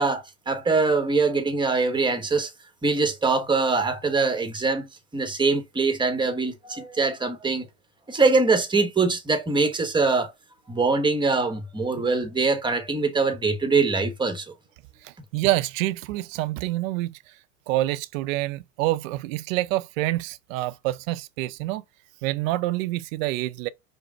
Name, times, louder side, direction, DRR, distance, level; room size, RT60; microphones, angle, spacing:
voice 1, 0.0-2.5 2.8-7.7 8.1-10.3 10.7-14.5, right 4 dB, 10° right, 1.0 m, -23 dB
voice 2, 15.0-17.2 17.7-21.8 22.2-23.7, right 17 dB, 60° right, 0.6 m, -27 dB
5.1 x 2.1 x 4.2 m
hypercardioid pair, 95°, 44 cm